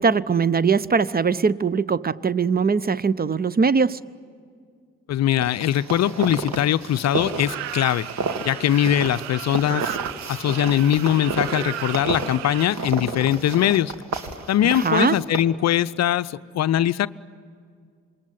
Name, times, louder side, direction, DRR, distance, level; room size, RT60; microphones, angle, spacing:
voice 1, 0.0-4.0 14.6-15.2, right 5 dB, 25° right, 21 dB, 0.7 m, -21 dB
voice 2, 5.1-8.1 8.4-10.0 10.3-13.9 14.5-17.1, left 11 dB, 45° left, 14 dB, 0.7 m, -21 dB
sound 1, 5.4-15.4, right 4 dB, 50° right, 2.5 m, -31 dB
sound 2, 7.1-12.7, right 13 dB, 75° right, 0.9 m, -34 dB
27.5 x 22.5 x 9.6 m, 2.1 s
figure-of-eight pair, 45°, 37 cm